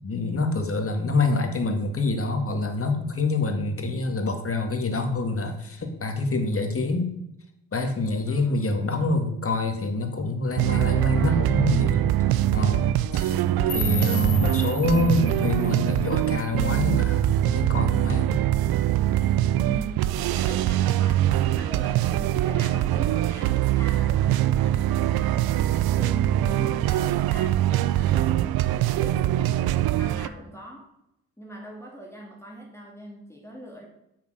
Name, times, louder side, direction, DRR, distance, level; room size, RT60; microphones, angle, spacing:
voice 1, 0.0-7.1 7.7-12.1 12.5-18.4, left 3 dB, 40° left, 5 dB, 2.0 m, -26 dB
voice 2, 8.3-8.6 10.6-12.8 19.6-30.9 31.4-33.9, right 1 dB, 5° left, -1 dB, 2.5 m, -42 dB
sound 1, 10.6-30.3, right 13 dB, 80° right, 0.5 m, -23 dB
sound 2, 13.7-16.7, left 4 dB, 70° left, 1.9 m, -36 dB
7.0 x 6.4 x 6.3 m, 0.83 s
supercardioid pair, 60°, 36 cm